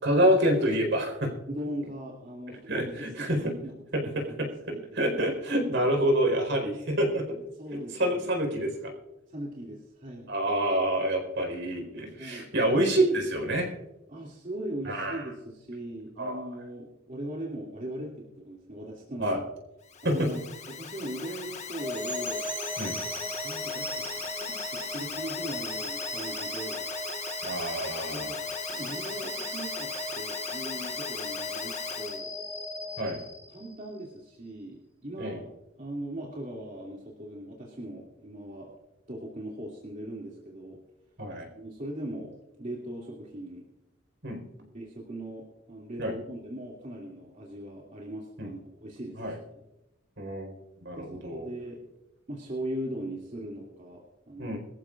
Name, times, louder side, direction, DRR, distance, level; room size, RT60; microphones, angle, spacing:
voice 1, 0.0-1.3 2.7-3.5 3.9-4.5 4.9-7.4 7.7-8.9 10.3-13.7 14.8-15.2 16.2-16.4 19.2-19.4 20.0-20.3 22.8-23.0 27.4-28.3 33.0-33.2 35.2-35.4 41.2-41.5 44.2-44.4 46.0-46.1 48.4-48.5 49.2-49.4 50.2-50.5 50.8-51.5 54.4-54.6, right 1 dB, 60° right, 3 dB, 4.5 m, -27 dB
voice 2, 1.5-3.7 4.0-5.0 5.7-5.8 7.6-8.2 9.3-10.3 12.2-12.5 14.1-19.4 20.0-22.5 23.4-26.9 28.1-28.4 28.7-32.3 33.1-33.2 33.5-35.4 35.8-38.7 39.1-40.8 41.5-42.3 42.6-43.7 44.7-49.2 51.0-51.8 52.3-54.6, right 1 dB, 40° right, -3 dB, 2.6 m, -39 dB
Alarm, 19.8-32.2, left 6 dB, 35° left, 1.5 m, -38 dB
sound 1, 21.8-33.9, equal, 10° right, 1.8 m, -37 dB
23.0 x 14.0 x 2.5 m, 0.92 s
head